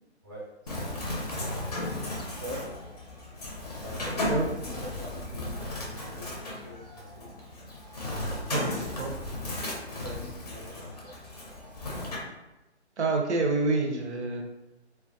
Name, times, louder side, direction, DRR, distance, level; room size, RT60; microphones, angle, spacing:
voice 1, 0.2-1.0 2.3-2.8 3.8-7.3 10.0-11.1, equal, 20° right, -7 dB, 0.5 m, -44 dB
Bird, 0.7-12.2, left 1 dB, 35° left, 0.5 m, -35 dB
voice 2, 8.5-9.1 13.0-14.4, right 3 dB, 75° right, 2 dB, 0.6 m, -27 dB
2.2 x 2.1 x 2.5 m, 0.97 s
figure-of-eight pair, 150°, 34 cm